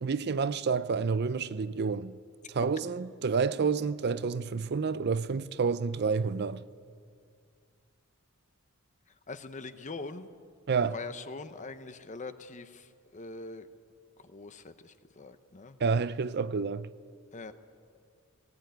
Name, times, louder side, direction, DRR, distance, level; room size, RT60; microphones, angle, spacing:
voice 1, 0.0-2.1 2.5-6.6 10.7-11.0 15.8-16.9, right 5 dB, 50° right, 0.5 m, -29 dB
voice 2, 9.3-10.3 10.9-13.7 14.2-15.8 17.3-17.5, left 3 dB, 35° left, 0.8 m, -43 dB
18.5 x 17.5 x 9.3 m
head